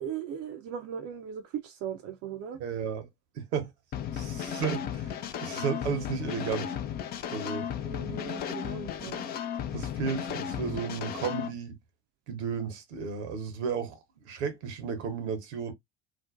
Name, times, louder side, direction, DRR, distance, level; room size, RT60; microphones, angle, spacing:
voice 1, 0.0-2.6 7.8-9.3, right 8 dB, 40° right, 0.5 m, -38 dB
voice 2, 2.6-3.1 3.3-3.7 4.1-6.7 7.3-7.7 9.1-9.2 9.7-11.8 12.3-14.0 14.2-15.7, right 6 dB, 65° right, 0.9 m, -33 dB
sound 1, 3.9-11.5, left 9 dB, 30° left, 0.4 m, -35 dB
2.4 x 2.1 x 2.4 m
figure-of-eight pair, 65°, 37 cm